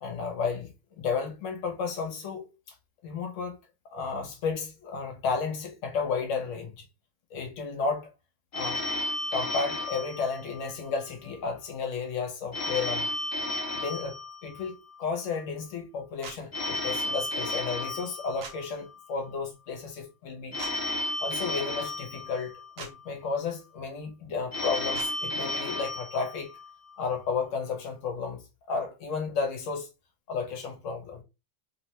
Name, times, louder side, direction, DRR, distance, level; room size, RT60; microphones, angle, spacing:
voice 1, 0.0-2.5 3.0-3.6 3.9-6.7 7.3-8.1 8.5-8.8 9.3-13.1 13.7-14.2 14.4-14.7 15.0-20.6 21.2-26.5 27.0-28.4 28.7-29.9 30.3-31.2, left 5 dB, 75° left, 1.0 m, -32 dB
Telephone, 8.5-11.0 12.5-15.0 16.5-19.0 20.5-23.0 24.5-27.0, left 1 dB, 40° left, 0.7 m, -33 dB
sound 1, 16.2-16.4 18.4-18.6 20.6-20.7 22.8-22.9 24.9-25.1, right 5 dB, 80° right, 1.0 m, -40 dB
2.9 x 2.1 x 2.7 m
omnidirectional pair, 1.4 m